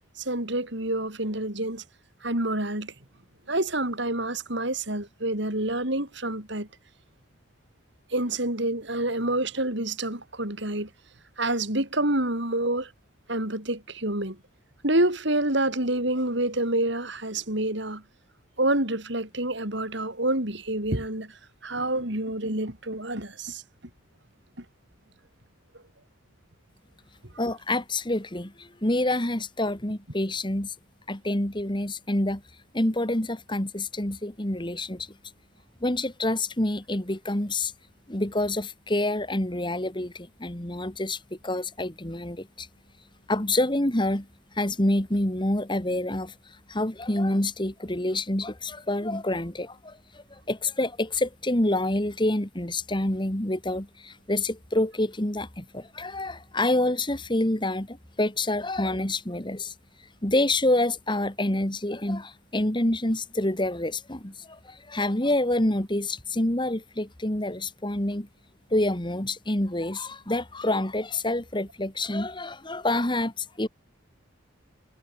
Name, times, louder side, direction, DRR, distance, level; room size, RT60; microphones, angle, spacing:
voice 1, 0.2-1.8 2.2-2.9 3.5-6.7 8.1-10.9 11.4-12.9 13.3-14.4 14.8-18.0 18.6-23.6 24.6-24.7, right 1 dB, 60° right, 5.5 m, -27 dB
voice 2, 27.4-30.7 31.1-32.4 32.7-35.1 35.8-37.7 38.1-42.7 43.3-44.3 44.5-46.3 46.7-59.7 60.2-68.3 68.7-73.7, left 1 dB, 25° left, 2.1 m, -27 dB
head